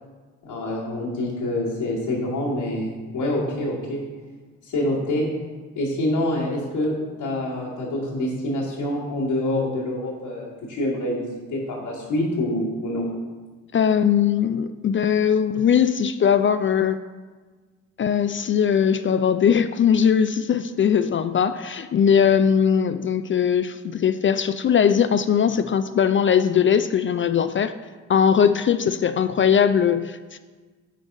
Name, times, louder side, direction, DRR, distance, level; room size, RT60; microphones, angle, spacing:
voice 1, 0.4-4.0 4.6-5.3 5.8-13.1, left 1 dB, 70° left, -7 dB, 2.2 m, -26 dB
voice 2, 13.7-17.0 18.0-27.7 28.1-30.4, left 8 dB, 30° left, 11 dB, 0.4 m, -20 dB
9.9 x 4.9 x 3.8 m, 1.4 s
hypercardioid pair, 40°, 41 cm